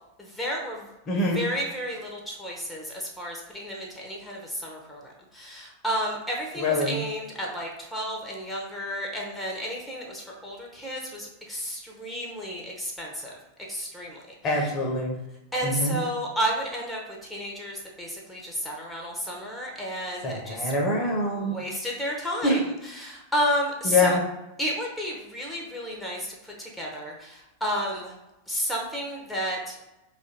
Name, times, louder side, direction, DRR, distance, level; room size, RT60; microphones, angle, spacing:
voice 1, 0.2-0.9 1.3-13.4 13.7-14.2 14.6-14.7 15.5-20.7 21.4-24.2 24.6-28.1 28.5-29.8, equal, 5° left, -2 dB, 0.8 m, -32 dB
voice 2, 1.1-1.4 6.6-7.0 14.4-15.2 15.6-16.0 20.2-21.6 22.4-22.6 23.8-24.2, left 2 dB, 30° left, 1 dB, 0.8 m, -24 dB
3.1 x 2.5 x 4.1 m, 0.97 s
figure-of-eight pair, 90°, 0 cm